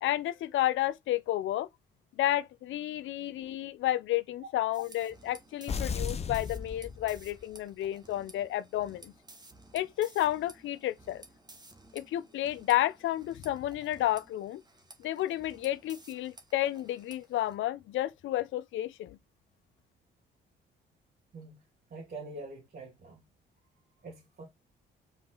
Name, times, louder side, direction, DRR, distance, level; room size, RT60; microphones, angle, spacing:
voice 1, 0.0-1.7 2.2-9.1 9.7-11.2 11.9-14.6 15.0-19.2, left 14 dB, 75° left, 0.6 m, -31 dB
sound 1, 4.7-17.5, right 2 dB, 20° right, 1.5 m, -55 dB
sound 2, 5.7-7.6, left 6 dB, 30° left, 0.6 m, -35 dB
voice 2, 21.3-21.6 21.9-23.2 24.0-24.4, right 2 dB, 50° right, 2.3 m, -45 dB
7.3 x 4.0 x 3.9 m
cardioid pair, 90°, 20 cm